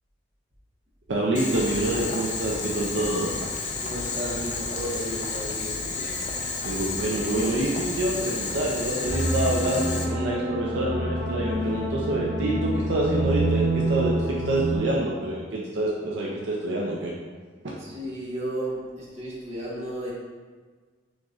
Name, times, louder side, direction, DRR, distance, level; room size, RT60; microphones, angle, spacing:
voice 1, 1.1-3.4 6.6-17.1, right 1 dB, 65° right, -4 dB, 0.5 m, -27 dB
Boiling, 1.4-10.0, left 3 dB, 40° left, 0.5 m, -31 dB
voice 2, 3.8-5.8 17.8-20.1, equal, 35° right, -7 dB, 1.2 m, -33 dB
sound 1, 9.1-14.8, right 1 dB, 85° right, 1.4 m, -27 dB
6.2 x 3.0 x 2.4 m, 1.5 s
head